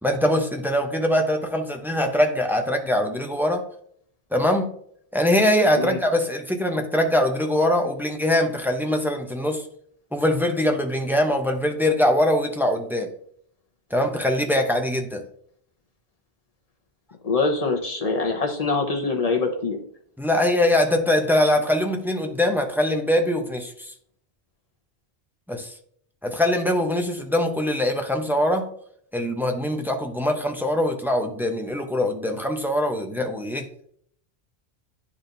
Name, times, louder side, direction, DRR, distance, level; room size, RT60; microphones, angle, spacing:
voice 1, 0.0-3.6 4.3-4.7 5.1-9.6 10.1-13.1 13.9-15.2 20.2-23.9 25.5-25.7 26.2-28.7 29.1-33.7, left 1 dB, ahead, 3 dB, 0.5 m, -22 dB
voice 2, 17.2-19.8, left 3 dB, 40° left, 2 dB, 1.0 m, -24 dB
10.0 x 4.3 x 2.6 m, 0.63 s
omnidirectional pair, 1.1 m